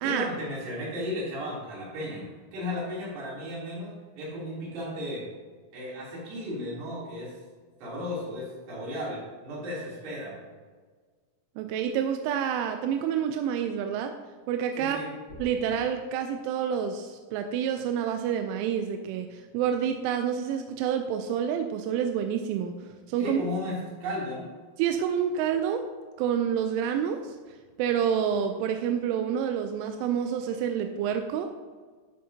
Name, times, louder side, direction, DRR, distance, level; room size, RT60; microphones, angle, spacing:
voice 1, 0.0-5.2 5.7-7.4 7.8-10.4 14.8-15.1 23.2-24.5, left 1 dB, 55° right, -6 dB, 4.9 m, -35 dB
voice 2, 11.6-14.1 14.5-15.0 15.4-23.4 24.8-25.9 26.2-31.5, right 8 dB, 85° right, 6 dB, 2.8 m, -28 dB
sound 1, 15.3-15.8, left 2 dB, 60° left, 4.3 m, -45 dB
13.0 x 7.4 x 2.8 m, 1.5 s
omnidirectional pair, 6.0 m